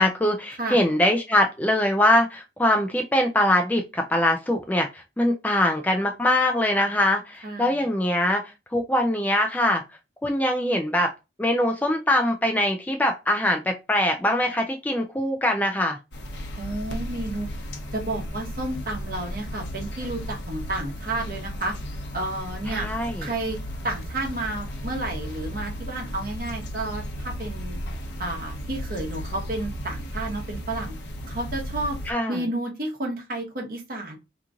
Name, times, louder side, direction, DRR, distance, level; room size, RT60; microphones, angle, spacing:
voice 1, 0.0-8.4 8.7-9.8 10.2-11.1 11.4-16.0 22.7-23.3 32.1-32.4, left 1 dB, 10° left, 4 dB, 0.3 m, -22 dB
voice 2, 0.6-0.9 7.4-7.9 16.6-17.5 17.9-21.8 22.1-22.9 23.2-23.6 23.8-27.8 28.2-31.0 31.3-32.0 32.3-34.2, right 2 dB, 50° right, 0 dB, 1.0 m, -31 dB
sound 1, 16.1-32.1, equal, 80° left, 0.8 m, -35 dB
2.9 x 2.5 x 3.6 m, 0.26 s
head